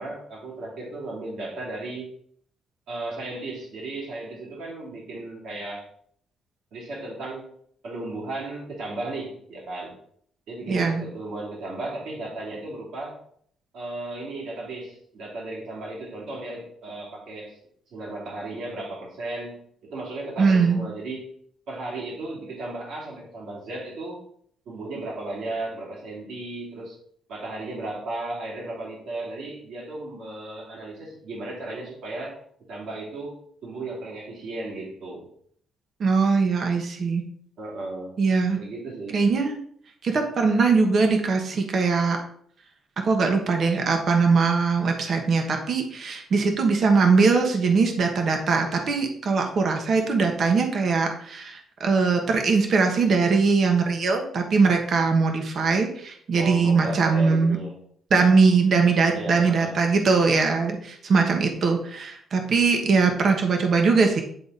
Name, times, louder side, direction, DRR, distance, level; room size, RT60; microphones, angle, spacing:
voice 1, 0.0-2.1 2.9-5.9 6.7-7.5 7.8-10.0 10.5-13.2 13.7-17.6 17.9-21.3 21.7-24.2 24.7-27.0 27.3-32.4 32.7-35.3 37.6-38.1 38.6-39.2 56.4-57.8 59.1-59.8, right 2 dB, 75° right, -3 dB, 2.7 m, -35 dB
voice 2, 10.7-11.0 20.4-20.8 36.0-37.2 38.2-38.6 39.1-39.6 40.0-42.2 43.0-57.6 58.1-64.2, right 4 dB, 55° right, 3 dB, 1.2 m, -21 dB
9.1 x 3.8 x 4.1 m, 0.63 s
cardioid pair, 90°, 0 cm